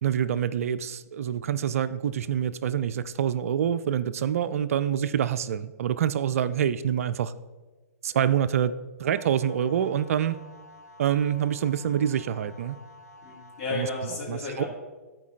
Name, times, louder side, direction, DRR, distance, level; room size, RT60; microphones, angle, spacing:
voice 1, 0.0-7.3 8.0-8.7 9.0-10.4 11.0-12.8 13.7-13.9 14.3-14.6, right 9 dB, 60° right, 15 dB, 0.4 m, -26 dB
sound 1, 9.1-14.1, left 1 dB, 75° left, 0.7 m, -50 dB
voice 2, 13.2-14.7, left 3 dB, 45° left, -4 dB, 2.8 m, -33 dB
13.0 x 4.6 x 3.2 m, 1.2 s
figure-of-eight pair, 120°, 9 cm